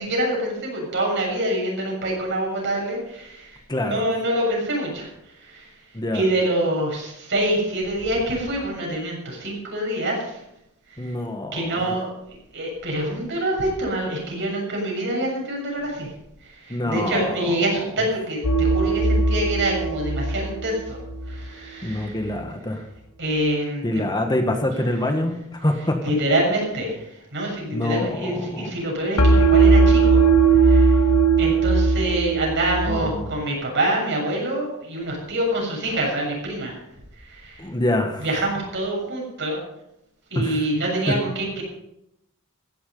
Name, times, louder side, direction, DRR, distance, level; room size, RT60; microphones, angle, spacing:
voice 1, 0.0-5.1 5.4-5.7 6.1-10.4 11.5-12.1 12.5-16.1 16.7-21.0 21.3-22.2 23.2-23.8 26.0-27.0 27.3-30.2 30.6-31.0 31.4-36.8 37.3-37.6 38.2-39.6 40.3-41.6, right 1 dB, 55° right, -1 dB, 7.2 m, -25 dB
voice 2, 3.7-4.1 5.9-6.2 11.0-12.0 16.7-17.6 21.8-22.9 23.8-26.0 27.7-28.7 32.9-33.3 37.6-38.3 40.3-40.7 41.1-41.2, left 1 dB, 20° left, 5 dB, 1.4 m, -25 dB
sound 1, 18.4-21.5 29.2-33.2, right 4 dB, 75° left, 1.7 m, -18 dB
15.5 x 11.5 x 5.4 m, 0.81 s
head